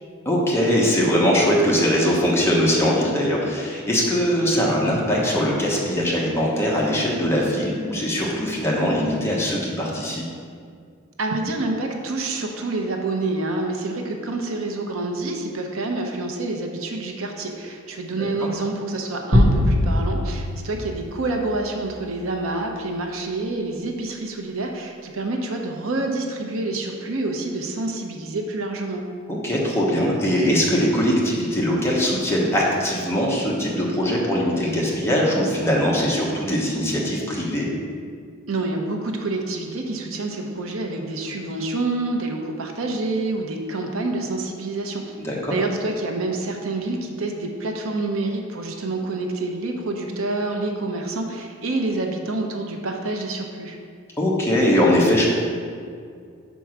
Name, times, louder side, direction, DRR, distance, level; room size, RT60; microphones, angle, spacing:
voice 1, 0.2-10.2 29.3-37.7 45.2-45.6 54.2-55.3, equal, 10° left, -4 dB, 1.1 m, -21 dB
voice 2, 11.2-29.0 38.5-45.2 45.5-53.8, right 2 dB, 70° right, 2 dB, 0.8 m, -27 dB
sound 1, 19.3-21.9, left 1 dB, 25° right, 1.2 m, -21 dB
5.3 x 4.6 x 5.9 m, 2.2 s
head